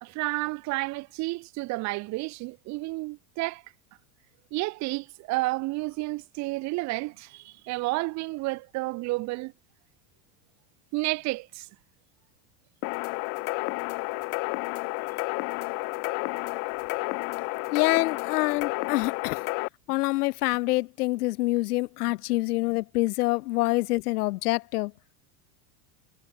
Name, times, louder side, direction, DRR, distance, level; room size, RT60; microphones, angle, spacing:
voice 1, 0.0-3.6 4.5-9.5 10.9-11.7, right 22 dB, 35° right, 2.6 m, -31 dB
sound 1, 12.8-19.7, left 34 dB, 40° left, 1.8 m, -31 dB
voice 2, 17.7-19.4 19.9-24.9, left 20 dB, 75° left, 1.5 m, -26 dB
supercardioid pair, 175°, 46 cm